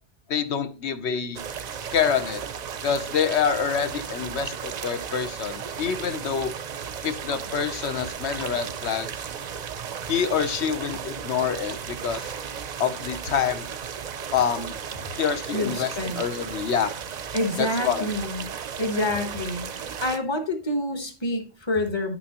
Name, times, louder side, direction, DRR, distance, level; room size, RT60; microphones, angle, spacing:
voice 1, 0.3-1.4 1.9-2.4 2.8-6.5 7.0-9.1 10.1-12.3 12.8-13.7 14.3-14.8 15.2-16.9 17.6-18.1, left 7 dB, 80° left, 10 dB, 1.1 m, -26 dB
sound 1, 1.3-20.2, right 7 dB, 50° right, 0.5 m, -35 dB
voice 2, 15.5-16.2 17.3-18.4 18.8-22.2, left 1 dB, 25° left, 5 dB, 1.1 m, -27 dB
9.6 x 6.0 x 2.9 m, 0.34 s
omnidirectional pair, 1.1 m